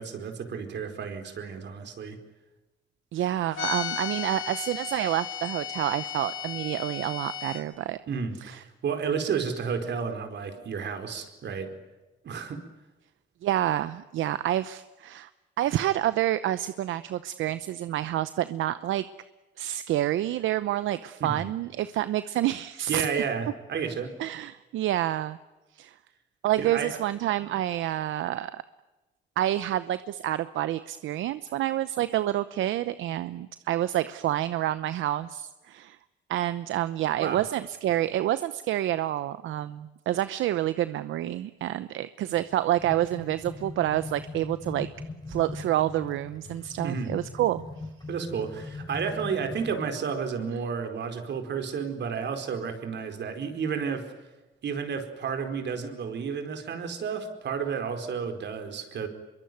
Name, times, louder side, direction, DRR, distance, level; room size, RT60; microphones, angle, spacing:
voice 1, 0.0-2.2 8.1-11.7 12.2-12.6 21.2-21.4 22.9-24.1 26.6-27.0 37.2-37.4 46.8-47.1 48.1-54.1 54.6-59.1, right 6 dB, 60° right, 6 dB, 4.7 m, -31 dB
voice 2, 3.1-8.0 8.4-8.6 13.4-15.3 15.6-19.1 19.6-23.1 24.2-25.4 25.7-26.0 26.4-28.6 29.4-36.0 36.3-44.9 45.3-47.6, right 13 dB, 80° right, 14 dB, 0.8 m, -28 dB
sound 1, 3.5-7.6, left 10 dB, 80° left, 6.4 m, -35 dB
sound 2, 42.3-49.9, left 3 dB, 20° left, 3.7 m, -41 dB
25.5 x 22.5 x 9.4 m, 1.1 s
cardioid pair, 90°, 20 cm